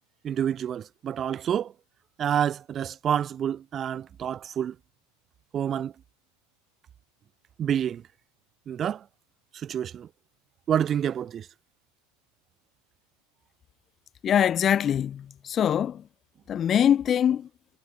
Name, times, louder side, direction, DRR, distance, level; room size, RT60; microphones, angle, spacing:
voice 1, 0.2-1.7 2.2-4.8 5.5-5.9 7.6-8.0 8.7-9.0 9.5-10.1 10.7-11.5, right 9 dB, 35° right, 0.8 m, -28 dB
voice 2, 14.2-16.0 16.5-17.5, left 9 dB, 35° left, 0.3 m, -23 dB
hypercardioid pair, 90°, 0 cm